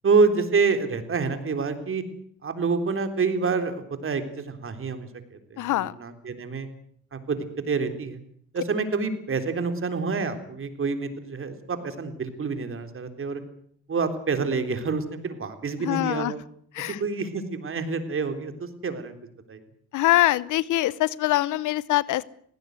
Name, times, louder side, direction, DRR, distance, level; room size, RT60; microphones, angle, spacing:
voice 1, 0.0-2.0 2.4-6.7 7.1-7.4 7.7-8.2 8.5-13.4 13.9-16.4 16.9-19.1 19.5-19.6, right 4 dB, 45° right, 8 dB, 3.7 m, -27 dB
voice 2, 5.6-5.9 15.8-16.3 16.7-17.0 19.9-22.2, left 15 dB, 85° left, 21 dB, 0.9 m, -23 dB
19.0 x 17.0 x 9.4 m, 0.64 s
cardioid pair, 90°, 30 cm